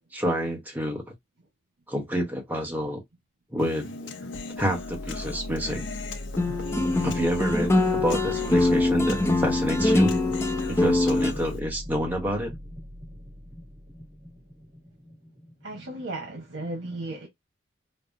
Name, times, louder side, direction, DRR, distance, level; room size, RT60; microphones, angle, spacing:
voice 1, 0.1-1.0 1.9-3.0 3.5-4.1 4.6-5.9 7.0-10.2 10.7-12.5, equal, 10° right, 1.1 m, -28 dB
Human voice, 3.6-11.6, left 3 dB, 80° left, 0.7 m, -38 dB
sound 1, 4.6-16.5, equal, 55° right, 2.6 m, -39 dB
sound 2, 6.4-11.3, left 2 dB, 15° left, 0.5 m, -23 dB
voice 2, 15.6-17.3, right 2 dB, 90° right, 1.1 m, -35 dB
5.3 x 2.1 x 2.7 m
head